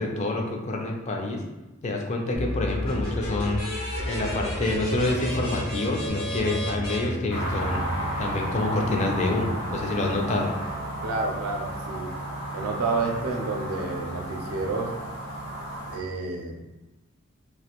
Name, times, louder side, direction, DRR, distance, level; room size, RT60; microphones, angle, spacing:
voice 1, 0.0-1.4 1.8-3.6 4.0-7.8 8.2-10.6, left 2 dB, 35° left, 1 dB, 0.4 m, -27 dB
sound 1, 2.3-8.0, equal, 80° left, 0.8 m, -31 dB
sound 2, 7.3-16.0, right 1 dB, 55° left, 0.8 m, -33 dB
voice 2, 11.0-12.2 12.5-15.0 15.9-16.8, right 3 dB, 85° right, 2 dB, 0.4 m, -30 dB
2.4 x 2.0 x 2.8 m, 1.0 s
head